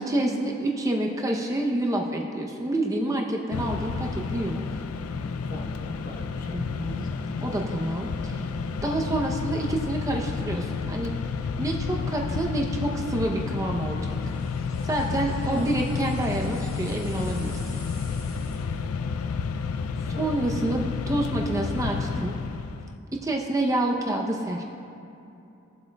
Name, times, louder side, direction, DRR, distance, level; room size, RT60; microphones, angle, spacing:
voice 1, 0.0-4.6 6.5-7.1 7.4-8.4 8.8-11.1 11.6-14.4 14.8-17.5 20.1-20.8 21.1-22.4 23.1-24.6, right 1 dB, 15° right, 0 dB, 0.6 m, -28 dB
Mechanisms, 3.5-23.0, left 5 dB, 85° left, 0.4 m, -31 dB
voice 2, 5.5-6.6 7.0-7.1 15.5-15.9 20.1-20.5, left 1 dB, 40° left, 1 dB, 1.0 m, -40 dB
sound 1, 14.1-18.9, left 1 dB, 20° left, 2.2 m, -49 dB
17.0 x 8.0 x 2.2 m, 2.8 s
head